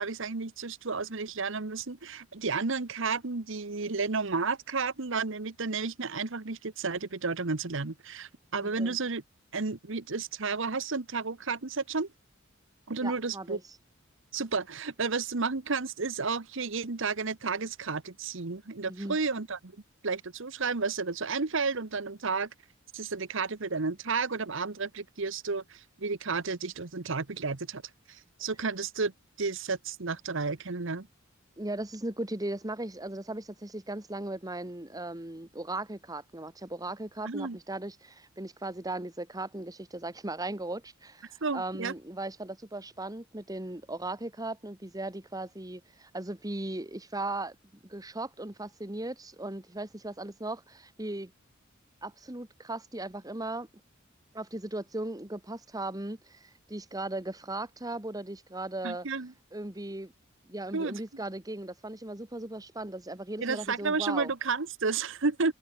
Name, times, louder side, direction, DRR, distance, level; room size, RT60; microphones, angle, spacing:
voice 1, 0.0-9.2 9.5-12.1 12.9-13.6 14.3-19.7 20.0-22.5 22.9-27.8 28.1-29.1 29.4-31.1 37.2-37.6 41.4-41.9 58.8-59.3 60.7-61.0 63.4-65.5, right 4 dB, 65° right, 1.2 m, -32 dB
voice 2, 8.6-9.0 13.0-13.6 18.9-19.2 31.6-47.5 47.8-51.3 52.0-53.7 54.3-59.1 59.5-60.1 60.5-64.3, right 2 dB, 20° right, 1.7 m, -37 dB
head